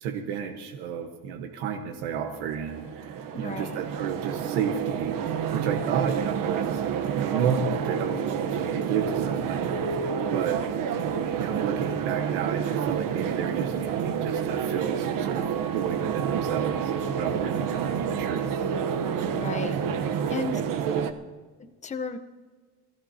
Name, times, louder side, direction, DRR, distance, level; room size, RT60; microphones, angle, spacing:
voice 1, 0.0-5.2 5.5-6.8 7.1-10.0 10.3-10.6 11.4-15.5 15.7-18.5, right 7 dB, 90° right, 4 dB, 1.3 m, -31 dB
sound 1, 2.3-21.1, right 7 dB, 60° right, 1.1 m, -29 dB
voice 2, 3.3-3.8 19.3-19.7 20.3-20.6 21.6-22.2, left 4 dB, 20° left, 8 dB, 0.9 m, -34 dB
23.0 x 14.5 x 2.8 m, 1.4 s
cardioid pair, 115°, 38 cm